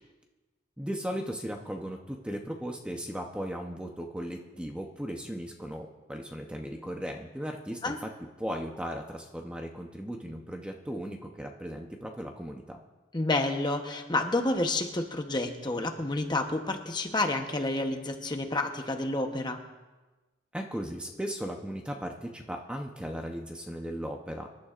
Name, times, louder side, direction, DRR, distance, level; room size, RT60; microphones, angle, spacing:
voice 1, 0.8-8.1 8.4-12.8 20.5-24.5, equal, 5° right, 2 dB, 0.8 m, -37 dB
voice 2, 13.1-19.6, left 2 dB, 25° left, 4 dB, 0.9 m, -29 dB
26.0 x 11.5 x 2.5 m, 1.2 s
head